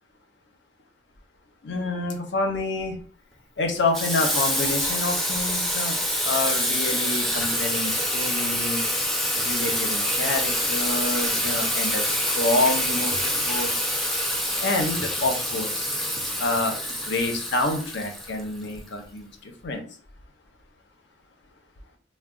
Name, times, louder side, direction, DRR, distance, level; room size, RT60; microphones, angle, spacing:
voice 1, 1.6-3.0 3.6-6.0 6.2-8.8 9.4-13.7 14.6-15.9 16.4-16.7 17.0-19.8, left 2 dB, 65° left, 3 dB, 0.6 m, -28 dB
Water tap faucet / Sink (filling or washing), 3.9-18.7, equal, ahead, 0.4 m, -26 dB
2.2 x 2.1 x 3.6 m, 0.43 s
head